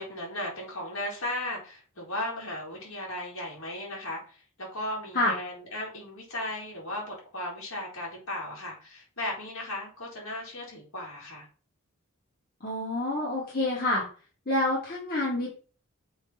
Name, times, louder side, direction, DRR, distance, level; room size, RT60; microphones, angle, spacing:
voice 1, 0.0-11.5, left 1 dB, 70° left, -3 dB, 3.9 m, -36 dB
voice 2, 12.6-14.0 14.5-15.5, left 1 dB, 45° left, -5 dB, 2.2 m, -27 dB
7.0 x 3.3 x 5.8 m, 0.39 s
head